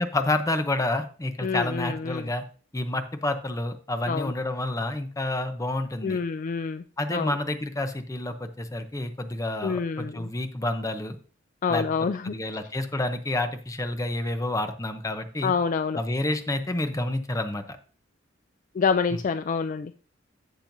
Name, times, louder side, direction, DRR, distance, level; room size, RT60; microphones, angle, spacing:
voice 1, 0.0-2.4 2.7-6.2 7.0-11.2 11.7-11.9 12.2-15.5 15.9-17.8, left 2 dB, 15° left, 8 dB, 0.7 m, -29 dB
voice 2, 1.4-2.3 4.1-4.3 6.0-6.8 7.1-7.3 9.6-10.3 11.6-12.4 15.4-16.0 18.8-19.9, left 5 dB, 40° left, 11 dB, 0.3 m, -27 dB
11.5 x 7.5 x 2.7 m, 0.39 s
head